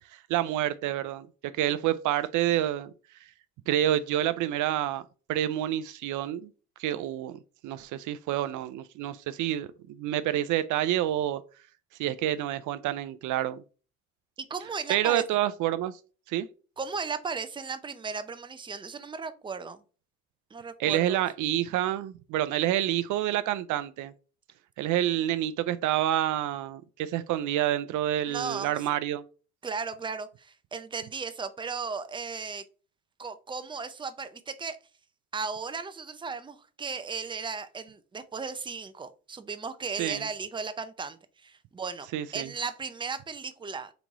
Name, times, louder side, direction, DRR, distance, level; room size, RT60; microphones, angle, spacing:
voice 1, 0.1-2.9 3.7-5.0 5.3-6.5 6.8-11.4 12.0-13.6 14.9-15.9 16.3-16.5 20.8-24.1 24.8-29.2 40.0-40.3 42.1-42.5, right 12 dB, 80° right, 0.5 m, -28 dB
voice 2, 14.5-15.2 16.8-19.8 20.5-21.2 28.3-28.7 29.6-32.6 33.2-34.8 35.3-42.1 42.3-43.9, right 5 dB, 15° right, 0.5 m, -36 dB
4.0 x 3.0 x 3.5 m
cardioid pair, 90°, 30 cm